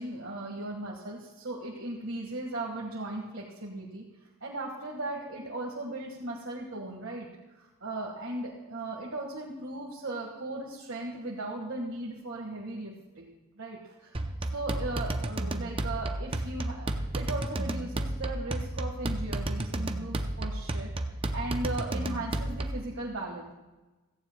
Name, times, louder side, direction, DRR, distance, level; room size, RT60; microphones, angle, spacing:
voice 1, 0.0-4.1 4.4-7.3 7.6-14.1 14.5-20.9 21.3-23.5, right 2 dB, 60° right, -3 dB, 1.7 m, -37 dB
sound 1, 14.1-22.9, right 1 dB, 25° right, 0.6 m, -32 dB
16.5 x 15.0 x 2.3 m, 1.1 s
head